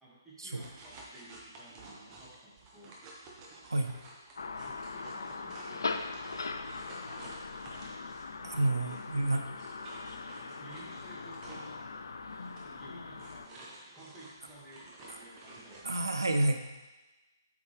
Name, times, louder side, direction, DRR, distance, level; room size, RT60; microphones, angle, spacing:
voice 1, 0.0-3.0 3.7-5.8 6.5-7.3 8.7-8.9 9.1-9.5 10.4-11.8 12.5-16.0, right 1 dB, ahead, -10 dB, 2.1 m, -54 dB
sound 1, 0.6-8.4 8.8-16.0, right 2 dB, 20° right, 1.2 m, -52 dB
sound 2, 4.4-13.5, left 4 dB, 70° left, 0.5 m, -40 dB
voice 2, 8.4-9.4 15.8-16.6, right 2 dB, 80° right, 5 dB, 0.6 m, -29 dB
8.1 x 5.2 x 3.5 m, 1.1 s
figure-of-eight pair, 140°, 2 cm